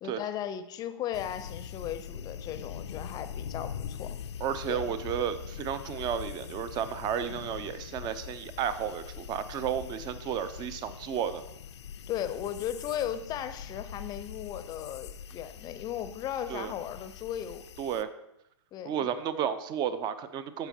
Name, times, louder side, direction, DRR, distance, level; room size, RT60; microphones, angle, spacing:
voice 1, 0.0-4.1 4.7-4.9 12.1-17.6 18.7-19.1, left 10 dB, 25° left, 11 dB, 0.6 m, -36 dB
sound 1, 1.1-18.0, left 8 dB, 70° left, 0.5 m, -42 dB
voice 2, 4.4-11.4 16.5-16.7 17.8-18.1 18.8-20.7, right 9 dB, 30° right, 13 dB, 0.6 m, -32 dB
13.5 x 5.1 x 2.8 m, 0.82 s
hypercardioid pair, 110°, 15 cm